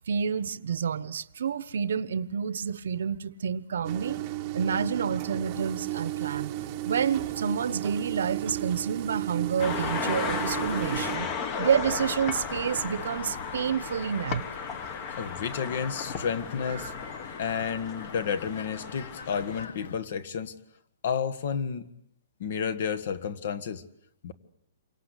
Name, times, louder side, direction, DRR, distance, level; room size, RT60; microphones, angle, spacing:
voice 1, 0.1-4.2 4.5-6.5 6.8-11.3 11.6-14.5 16.8-16.9, right 7 dB, 65° right, 1.1 m, -29 dB
sound 1, 3.8-11.2, right 15 dB, 20° right, 1.2 m, -34 dB
sound 2, 9.6-20.0, left 6 dB, 60° left, 2.0 m, -44 dB
sound 3, 9.6-19.6, left 6 dB, 20° left, 1.4 m, -35 dB
voice 2, 15.2-16.9 17.4-20.5 21.0-21.9 22.4-23.8 24.2-24.3, left 7 dB, 40° left, 1.7 m, -31 dB
28.5 x 24.5 x 8.4 m
hypercardioid pair, 180°, 0 cm